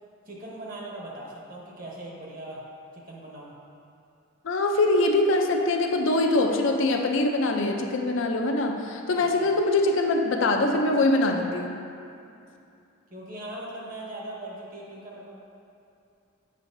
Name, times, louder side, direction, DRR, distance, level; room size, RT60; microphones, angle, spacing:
voice 1, 0.3-2.6 2.9-3.5 9.2-9.5 13.1-15.3, right 1 dB, 40° right, -3 dB, 1.0 m, -40 dB
voice 2, 4.4-11.7, left 2 dB, 65° left, 3 dB, 0.5 m, -23 dB
7.4 x 5.7 x 2.6 m, 2.6 s
head